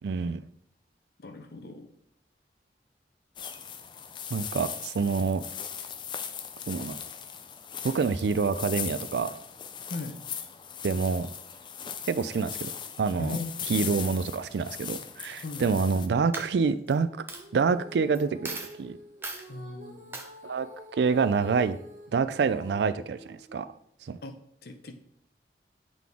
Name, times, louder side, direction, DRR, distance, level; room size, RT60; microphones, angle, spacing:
voice 1, 0.0-0.4 4.3-5.4 6.7-7.0 7.8-9.3 10.8-11.3 12.1-12.7 13.0-13.4 13.7-17.1 17.5-19.0 20.4-20.7 20.9-21.8 22.1-23.7 24.0-24.2, right 5 dB, 80° right, 13 dB, 0.4 m, -27 dB
voice 2, 1.2-1.9 9.9-10.2 13.2-13.5 15.4-15.8 19.5-20.3 24.2-24.4 24.6-25.0, left 3 dB, 65° left, 6 dB, 0.7 m, -38 dB
sound 1, 3.4-16.1, left 8 dB, 25° left, 0.3 m, -39 dB
Coin (dropping), 15.7-16.0 16.3-16.9 17.3-17.4 18.1-18.2 18.4-18.7 19.2-19.4 20.1-20.3, right 3 dB, 15° right, 0.6 m, -37 dB
Female singing, 17.3-23.8, equal, 45° right, 1.4 m, -48 dB
7.5 x 3.9 x 3.5 m, 0.73 s
head